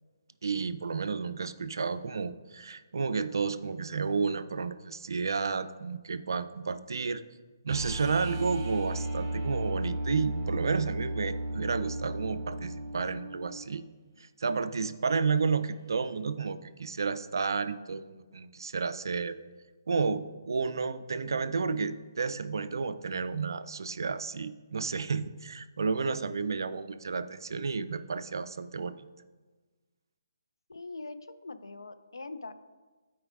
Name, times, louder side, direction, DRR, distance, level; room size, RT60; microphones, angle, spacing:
voice 1, 0.4-7.2 7.6-13.8 14.2-19.4 19.9-29.0, right 5 dB, 70° right, 12 dB, 0.4 m, -31 dB
sound 1, 7.7-13.6 16.1-16.2, right 1 dB, 40° right, 1.6 m, -34 dB
voice 2, 30.7-32.6, left 3 dB, 85° left, 10 dB, 0.5 m, -42 dB
12.5 x 4.7 x 2.4 m, 1.3 s
figure-of-eight pair, 145°, 2 cm